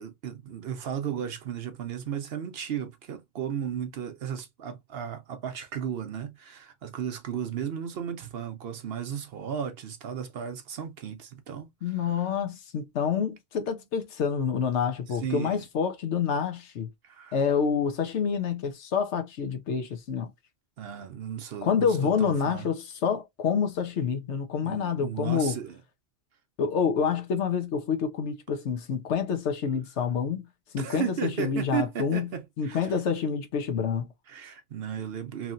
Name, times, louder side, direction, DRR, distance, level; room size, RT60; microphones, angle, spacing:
voice 1, 0.0-12.3 15.1-15.6 17.0-17.4 20.8-22.7 24.6-25.8 30.8-33.0 34.3-35.5, right 8 dB, 65° right, 0.8 m, -35 dB
voice 2, 11.8-16.9 17.3-20.3 21.6-25.6 26.6-30.5 30.7-32.3 32.6-34.1, left 6 dB, 70° left, 1.0 m, -27 dB
3.0 x 2.7 x 2.4 m
omnidirectional pair, 1.2 m